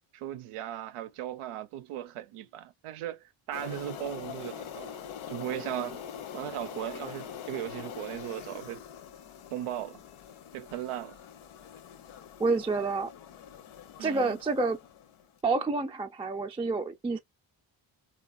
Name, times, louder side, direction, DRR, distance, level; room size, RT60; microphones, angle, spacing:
voice 1, 0.1-4.9 5.3-6.0 6.3-8.8 9.5-10.0 10.5-11.2 14.0-14.4, right 12 dB, 85° right, 0.6 m, -37 dB
sound 1, 3.5-15.3, left 8 dB, 75° left, 0.7 m, -44 dB
voice 2, 12.4-13.1 14.0-14.8 15.4-17.2, right 3 dB, 15° right, 0.3 m, -28 dB
2.8 x 2.3 x 2.3 m
cardioid pair, 60°, 50 cm